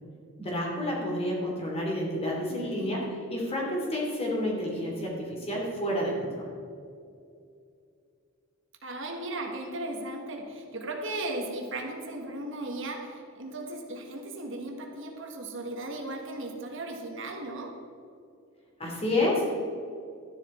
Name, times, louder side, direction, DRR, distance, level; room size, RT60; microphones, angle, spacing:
voice 1, 0.4-6.5 18.8-19.5, left 1 dB, 30° left, -2 dB, 2.9 m, -30 dB
voice 2, 2.5-3.2 8.8-17.8, right 2 dB, 60° right, 2 dB, 1.5 m, -36 dB
12.5 x 10.5 x 4.4 m, 2.5 s
head